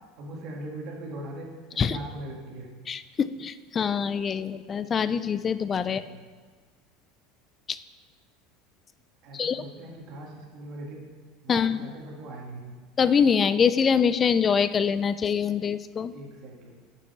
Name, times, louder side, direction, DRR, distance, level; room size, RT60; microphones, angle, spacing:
voice 1, 0.2-2.7 5.9-6.2 9.2-11.0 11.4-12.8 16.1-16.8, right 1 dB, 45° right, -1 dB, 1.8 m, -40 dB
voice 2, 2.9-6.0 7.7-7.8 9.3-9.6 11.5-11.9 13.0-16.1, left 6 dB, 25° left, 14 dB, 0.3 m, -24 dB
7.5 x 6.5 x 5.5 m, 1.4 s
supercardioid pair, 145°, 0 cm